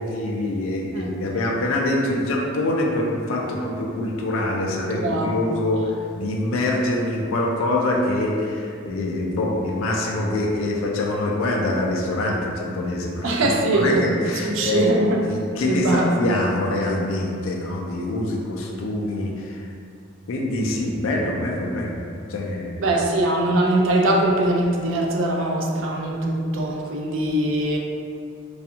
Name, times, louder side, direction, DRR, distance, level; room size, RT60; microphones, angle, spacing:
voice 1, 0.0-15.0 15.3-19.7 20.3-22.0 22.3-22.8, left 1 dB, 90° left, -1 dB, 0.4 m, -25 dB
voice 2, 4.9-5.4 13.2-15.2 15.7-16.1 22.8-27.8, right 1 dB, 70° right, 0 dB, 0.4 m, -22 dB
2.4 x 2.3 x 2.7 m, 2.3 s
head